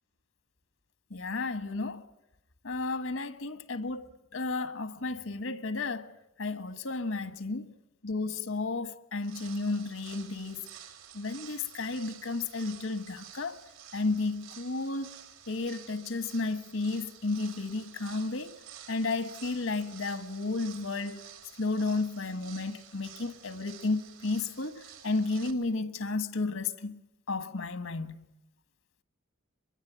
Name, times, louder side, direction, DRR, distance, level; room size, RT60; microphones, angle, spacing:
voice 1, 1.1-2.1 2.6-6.1 6.4-7.7 8.0-10.7 11.1-13.6 13.9-15.1 15.5-18.6 18.9-21.2 21.6-27.0 27.3-28.3, left 3 dB, 70° left, 1.5 m, -33 dB
sound 1, 9.2-25.5, right 9 dB, 85° right, 4.0 m, -51 dB
24.0 x 22.5 x 9.1 m
head